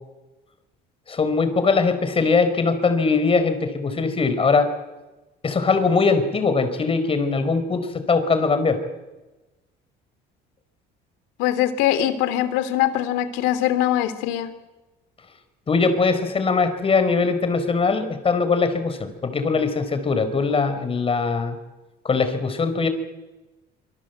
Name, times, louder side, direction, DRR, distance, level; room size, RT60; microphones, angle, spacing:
voice 1, 1.1-4.7 5.4-8.8 15.7-21.6 22.0-22.9, left 4 dB, 30° left, 10 dB, 4.6 m, -21 dB
voice 2, 11.4-14.5, left 12 dB, 90° left, 12 dB, 3.0 m, -22 dB
25.5 x 25.0 x 8.2 m, 1.1 s
cardioid pair, 110°, 19 cm